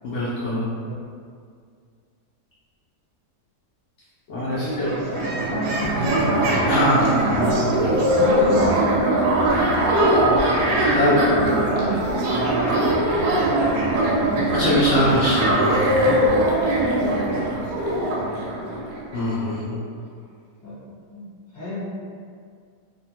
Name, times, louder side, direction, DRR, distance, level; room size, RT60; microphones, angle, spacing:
voice 1, 0.0-0.7 4.3-4.9 6.7-7.8 10.8-11.2 14.5-16.1 19.1-19.8, left 1 dB, 75° left, -9 dB, 0.6 m, -23 dB
sound 1, 4.3-4.4 4.6-19.2, right 1 dB, 70° right, 0.9 m, -21 dB
voice 2, 4.5-6.4 7.8-11.9 12.3-14.8 17.2-18.8 20.6-21.8, equal, 30° left, -11 dB, 1.1 m, -34 dB
2.7 x 2.1 x 2.8 m, 2.1 s
omnidirectional pair, 1.7 m